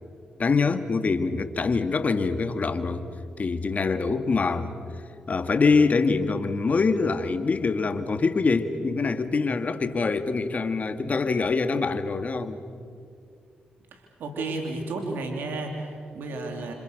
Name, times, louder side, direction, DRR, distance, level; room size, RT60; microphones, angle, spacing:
voice 1, 0.4-3.1 3.4-4.7 5.3-12.6, left 4 dB, 45° left, 9 dB, 2.0 m, -24 dB
voice 2, 13.9-16.7, right 2 dB, 75° right, 2 dB, 3.3 m, -32 dB
29.5 x 26.5 x 6.6 m, 2.3 s
supercardioid pair, 50°, 3 cm